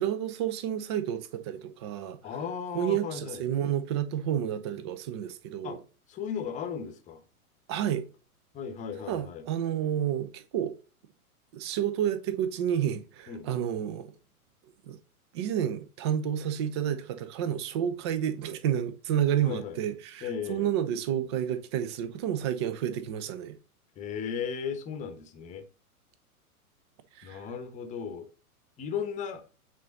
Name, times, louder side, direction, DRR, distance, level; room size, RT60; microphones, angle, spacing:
voice 1, 0.0-2.2 2.7-5.8 7.7-8.0 9.1-10.8 11.5-14.1 14.9-15.0 15.3-23.6 27.2-27.5, right 10 dB, 20° right, 0.4 m, -30 dB
voice 2, 2.2-3.4 5.6-5.8 6.1-7.2 8.5-9.4 13.3-13.5 19.4-19.8 20.2-20.7 24.0-25.7 27.2-28.3 28.8-29.4, left 7 dB, 15° left, 1.0 m, -36 dB
8.3 x 3.9 x 3.9 m
figure-of-eight pair, 105°, 44 cm